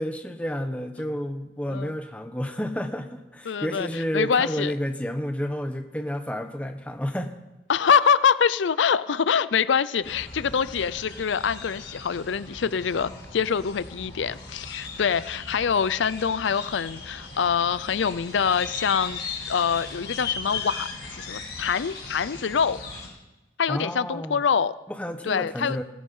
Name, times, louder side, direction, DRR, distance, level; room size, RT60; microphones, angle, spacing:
voice 1, 0.0-7.3 23.7-24.4 24.9-25.8, equal, 5° left, 6 dB, 1.0 m, -30 dB
voice 2, 3.5-4.7 7.7-19.2 19.5-22.8 23.6-24.7 25.2-25.8, left 6 dB, 85° left, 17 dB, 0.5 m, -25 dB
sound 1, 10.0-23.1, left 4 dB, 65° left, 5.4 m, -38 dB
16.5 x 15.0 x 5.5 m, 1.0 s
head